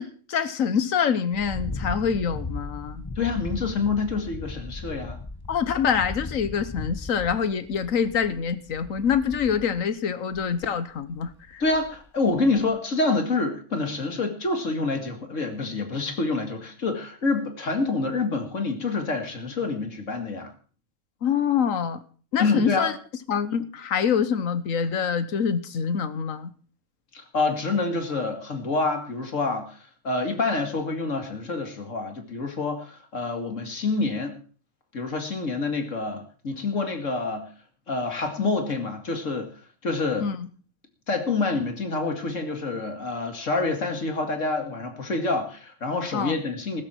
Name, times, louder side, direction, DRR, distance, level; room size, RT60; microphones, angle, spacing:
voice 1, 0.0-3.0 5.5-11.6 21.2-22.0 22.3-22.9 23.3-26.5 40.2-40.5 46.1-46.4, left 7 dB, 85° left, 13 dB, 1.5 m, -25 dB
sound 1, 1.3-9.9 10.3-10.6 11.2-12.1 12.4-12.7, left 2 dB, 20° left, 1.1 m, -37 dB
voice 2, 3.2-5.2 11.6-20.5 22.4-22.9 27.1-34.4 34.9-37.5 37.9-39.5 39.8-40.3 41.1-46.8, left 3 dB, 70° left, 5 dB, 2.6 m, -27 dB
16.0 x 13.0 x 4.5 m, 0.41 s
omnidirectional pair, 1.4 m